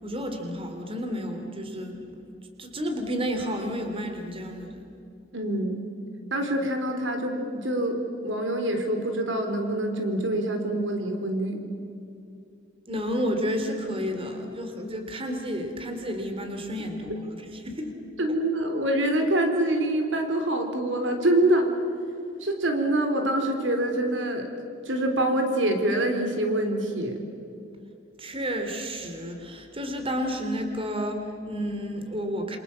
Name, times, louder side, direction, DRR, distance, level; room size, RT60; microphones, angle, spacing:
voice 1, 0.0-2.3 2.6-4.8 12.9-17.9 28.2-32.6, equal, 30° right, 5 dB, 3.0 m, -31 dB
voice 2, 5.3-5.8 6.3-11.6 18.2-21.7 22.4-24.5 24.9-27.1, right 1 dB, 80° right, 5 dB, 3.9 m, -25 dB
28.0 x 26.0 x 7.4 m, 2.6 s
head